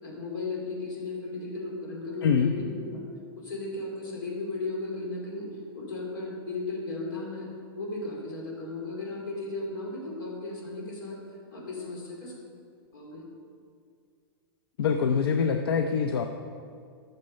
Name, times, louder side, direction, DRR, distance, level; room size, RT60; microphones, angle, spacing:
voice 1, 0.0-3.0 3.3-5.5 5.7-7.5 7.7-11.2 11.5-12.3 12.9-13.2, left 3 dB, 50° left, -2 dB, 2.8 m, -35 dB
voice 2, 2.2-2.5 14.8-16.3, left 6 dB, 75° left, 5 dB, 0.6 m, -24 dB
12.0 x 6.7 x 5.3 m, 2.3 s
hypercardioid pair, 175°, 13 cm